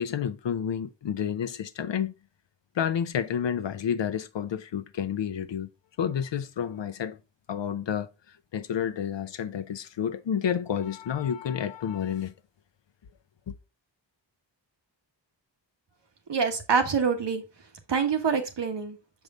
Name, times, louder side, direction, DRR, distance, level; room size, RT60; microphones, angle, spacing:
voice 1, 0.0-2.1 2.8-5.7 6.0-7.2 7.5-8.1 8.5-12.3 13.5-13.6, left 8 dB, 75° left, 0.8 m, -30 dB
voice 2, 16.3-17.4 17.9-19.0, right 6 dB, 65° right, 1.6 m, -25 dB
6.7 x 4.8 x 3.7 m
wide cardioid pair, 135°, 45 cm